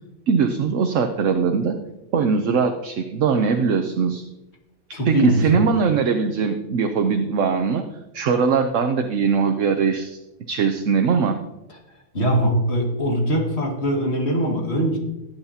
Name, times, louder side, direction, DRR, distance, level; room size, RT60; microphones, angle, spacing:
voice 1, 0.3-1.8 2.1-4.2 5.0-7.8 8.1-10.2 10.5-11.4, right 5 dB, 70° right, 5 dB, 1.1 m, -21 dB
voice 2, 4.9-5.7 12.1-15.0, right 1 dB, 50° left, 0 dB, 2.3 m, -21 dB
17.5 x 8.9 x 2.8 m, 0.96 s
omnidirectional pair, 1.4 m